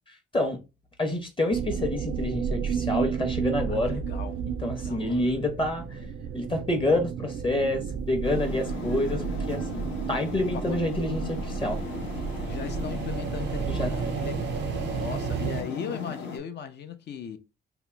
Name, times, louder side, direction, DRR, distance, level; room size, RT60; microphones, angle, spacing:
voice 1, 1.0-4.0 4.6-6.1 6.3-11.8 13.7-14.1, left 1 dB, 25° left, 0.7 m, -28 dB
sound 1, 1.5-15.6, right 7 dB, 60° right, 0.4 m, -32 dB
voice 2, 3.7-4.4 4.8-5.3 10.7-10.8 12.5-14.5 14.8-17.4, left 7 dB, 60° left, 0.6 m, -38 dB
sound 2, 8.2-16.4, left 5 dB, 80° left, 0.9 m, -37 dB
2.8 x 2.0 x 3.3 m
cardioid pair, 90°, 20 cm